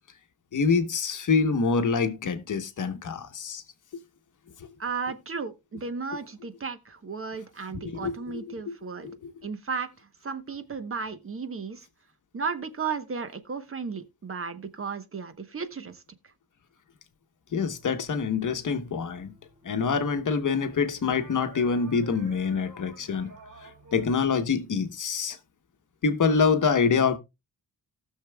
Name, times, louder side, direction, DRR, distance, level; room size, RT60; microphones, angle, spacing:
voice 1, 0.5-3.6 7.7-8.2 8.7-8.8 9.0-9.3 17.5-19.3 19.6-23.3 23.6-25.4 26.0-27.2, left 5 dB, 55° left, 1.1 m, -26 dB
voice 2, 4.8-9.1 9.4-11.9 12.3-16.0, right 5 dB, 35° right, 1.0 m, -34 dB
sound 1, 17.5-24.1, right 3 dB, 50° right, 2.9 m, -51 dB
18.5 x 6.6 x 2.3 m
wide cardioid pair, 170°, 37 cm